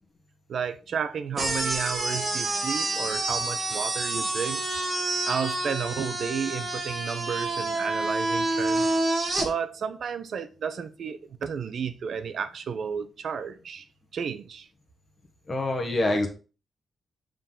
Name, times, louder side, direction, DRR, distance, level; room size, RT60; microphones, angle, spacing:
voice 1, 0.5-4.6 5.2-8.9 9.4-13.8 14.1-14.7, right 7 dB, 60° right, 0.7 m, -32 dB
sound 1, 1.4-9.5, right 2 dB, 30° right, 1.6 m, -28 dB
voice 2, 15.5-16.3, left 2 dB, 25° left, 1.4 m, -25 dB
6.8 x 3.9 x 3.9 m
cardioid pair, 120°, 0 cm